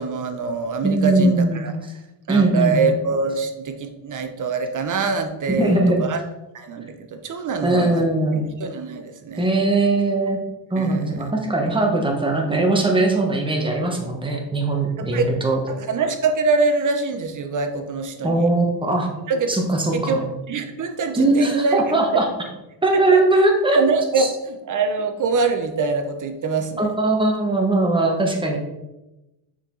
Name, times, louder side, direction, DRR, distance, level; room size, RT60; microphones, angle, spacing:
voice 1, 0.0-1.7 2.3-6.2 6.5-8.0 8.6-9.5 10.8-11.3 15.0-15.3 15.7-18.5 19.3-19.6 19.9-21.8 22.1-22.2 22.9-23.2 23.7-26.9, right 4 dB, 40° right, 7 dB, 0.8 m, -24 dB
voice 2, 0.8-1.6 2.3-2.8 5.5-6.1 7.6-8.5 9.4-10.4 10.7-15.6 18.2-19.1 19.5-20.2 21.1-22.3 22.8-23.8 24.2-24.3 26.8-28.6, right 2 dB, 10° right, 1 dB, 1.2 m, -20 dB
6.4 x 4.8 x 3.8 m, 0.99 s
cardioid pair, 125°, 47 cm